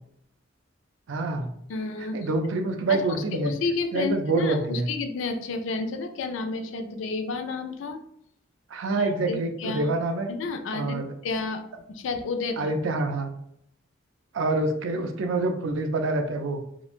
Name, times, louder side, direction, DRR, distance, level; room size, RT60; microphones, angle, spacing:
voice 1, 1.1-1.5 2.1-3.5 3.9-4.9 8.7-10.3 10.7-11.1 12.6-13.3 14.3-16.6, right 2 dB, 75° right, 5 dB, 0.4 m, -26 dB
voice 2, 1.7-2.2 2.9-8.0 8.9-9.9 10.3-11.0 11.2-11.6 11.9-12.7, left 4 dB, 70° left, 6 dB, 0.4 m, -31 dB
2.9 x 2.1 x 2.4 m, 0.71 s
head